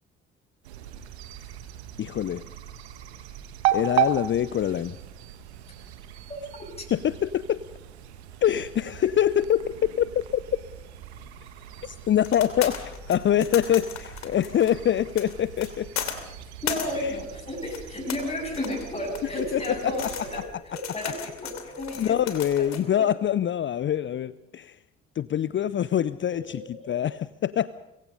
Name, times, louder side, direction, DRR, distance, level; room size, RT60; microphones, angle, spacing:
sound 1, 0.6-20.5, right 10 dB, 75° right, 1.4 m, -36 dB
voice 1, 2.0-2.4 3.7-5.0 6.9-7.6 8.4-10.4 11.8-12.8 13.1-15.9 17.0-17.1 19.3-19.6 22.0-24.7 25.2-27.7, left 10 dB, 35° left, 17 dB, 0.7 m, -24 dB
sound 2, 11.1-22.8, left 9 dB, 55° left, 2.9 m, -38 dB
voice 2, 16.6-20.5 20.7-22.2 22.6-23.0 26.3-26.9, left 1 dB, 20° left, -1 dB, 7.9 m, -33 dB
24.5 x 23.0 x 5.4 m, 0.93 s
figure-of-eight pair, 45°, 33 cm